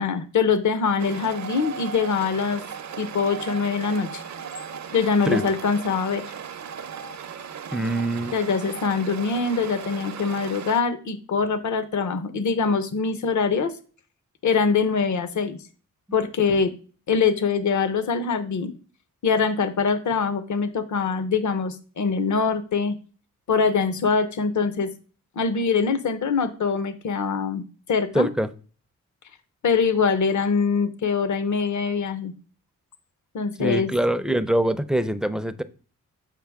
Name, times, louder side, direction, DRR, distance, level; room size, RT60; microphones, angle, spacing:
voice 1, 0.0-2.6 3.0-4.2 4.9-6.2 8.3-13.7 14.4-15.6 16.1-16.7 17.1-18.7 19.2-23.0 23.5-24.9 25.4-27.6 27.9-28.3 29.6-32.3 33.3-33.9, left 5 dB, 60° left, 0.8 m, -23 dB
sound 1, 1.0-10.8, right 7 dB, 55° right, 0.6 m, -37 dB
voice 2, 7.7-8.4 28.1-28.5 33.6-35.6, right 1 dB, ahead, 0.4 m, -24 dB
7.5 x 5.1 x 3.5 m
wide cardioid pair, 100°, 33 cm